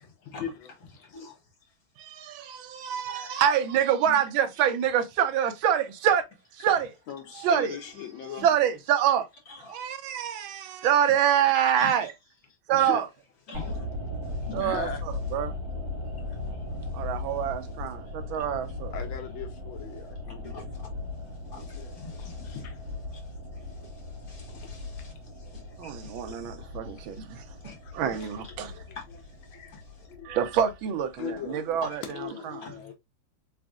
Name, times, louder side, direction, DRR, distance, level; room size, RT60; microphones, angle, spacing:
voice 1, 0.0-1.1 7.1-8.4 12.7-13.0 13.5-13.6 14.6-15.0 18.9-20.6 21.7-22.8 24.5-24.7 25.4-25.6 26.3-26.9 27.8-28.4 28.7-28.8 29.5-30.4 31.2-31.6 32.1-32.9, left 7 dB, 75° left, 1.5 m, -40 dB
voice 2, 1.0-1.7 2.6-2.7 3.1-3.4 4.0-4.2 8.4-8.5 9.5-10.9 11.8-12.1 13.5-13.9 14.2-14.7 16.0-17.1 17.8-18.3 20.3-22.6 23.1-30.1 31.8-32.0 32.6-32.9, left 4 dB, 50° left, 1.7 m, -48 dB
voice 3, 2.0-6.2 6.6-6.9 7.4-7.8 8.4-9.3 9.7-12.1 12.7-13.1 14.5-14.9 15.3-15.5 16.9-18.9 25.8-27.4 27.9-28.7 30.2-32.0 32.4-32.6, right 9 dB, 80° right, 1.5 m, -26 dB
sound 1, 13.5-31.7 32.0-32.1, left 2 dB, 50° right, 2.2 m, -38 dB
4.2 x 3.4 x 2.4 m
omnidirectional pair, 2.2 m